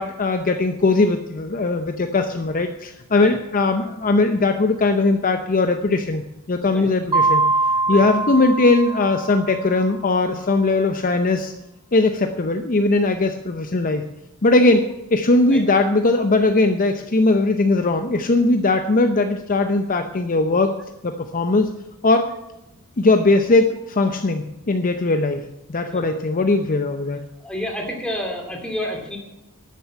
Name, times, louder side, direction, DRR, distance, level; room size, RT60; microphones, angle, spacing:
voice 1, 0.0-7.4 7.9-11.5 11.9-14.1 14.4-20.8 21.0-21.7 22.0-22.3 23.0-27.2, left 2 dB, 40° left, 7 dB, 0.7 m, -19 dB
Mallet percussion, 7.1-9.7, right 3 dB, 20° right, 0.3 m, -22 dB
voice 2, 27.4-29.2, equal, 5° left, 1 dB, 2.7 m, -29 dB
12.0 x 6.9 x 8.4 m, 0.91 s
head